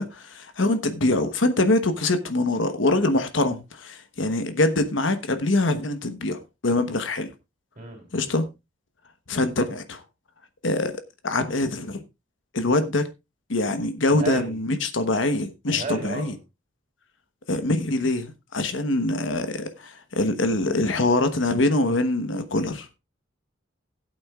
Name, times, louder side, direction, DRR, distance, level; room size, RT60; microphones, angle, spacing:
voice 1, 0.0-7.3 8.1-8.5 9.3-10.0 10.6-10.9 11.2-12.0 12.5-13.1 13.5-16.3 17.5-22.9, left 2 dB, 75° left, 1.2 m, -24 dB
voice 2, 7.8-8.1 14.1-14.6 15.7-16.3, right 3 dB, 35° right, 3.2 m, -32 dB
16.5 x 8.7 x 2.4 m
head